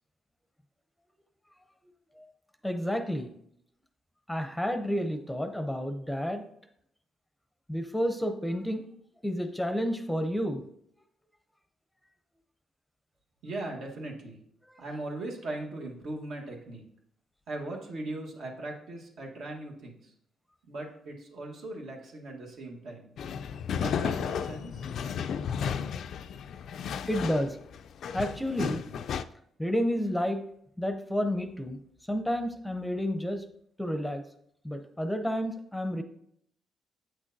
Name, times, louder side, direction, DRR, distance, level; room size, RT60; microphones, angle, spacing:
voice 1, 2.6-3.3 4.3-6.4 7.7-8.8 9.2-10.6 14.7-14.8 27.1-27.6 28.1-28.8 29.6-30.4 30.8-31.8 32.1-33.4 33.8-34.2 34.6-36.0, equal, 5° left, 7 dB, 0.6 m, -30 dB
voice 2, 13.4-14.4 14.8-16.8 17.5-20.1 20.7-23.1 23.7-24.9, right 2 dB, 70° right, 0 dB, 1.3 m, -39 dB
sound 1, 23.2-29.2, left 7 dB, 65° left, 0.3 m, -33 dB
8.0 x 6.2 x 2.7 m, 0.71 s
cardioid pair, 90°, 0 cm